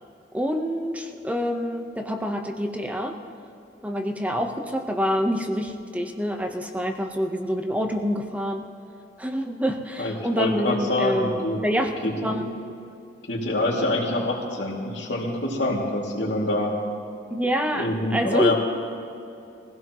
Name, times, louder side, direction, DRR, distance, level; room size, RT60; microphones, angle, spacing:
voice 1, 0.3-3.2 3.8-8.7 9.2-11.9 12.2-12.6 17.3-18.5, equal, 10° right, 4 dB, 1.0 m, -26 dB
voice 2, 10.0-11.6 12.0-12.3 13.3-16.8 17.7-18.5, left 1 dB, 85° left, -2 dB, 2.6 m, -25 dB
22.5 x 16.0 x 3.1 m, 2.7 s
head